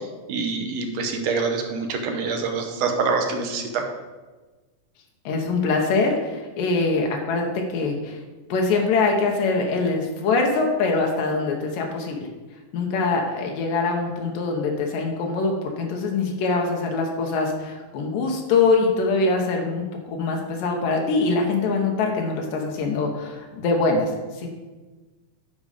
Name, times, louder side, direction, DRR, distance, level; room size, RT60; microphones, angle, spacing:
voice 1, 0.3-3.9, right 4 dB, 70° right, 4 dB, 1.7 m, -25 dB
voice 2, 5.3-8.2 8.5-12.3 12.7-24.1 24.4-24.5, left 3 dB, 90° left, 1 dB, 2.7 m, -23 dB
10.5 x 5.4 x 5.0 m, 1.2 s
omnidirectional pair, 3.7 m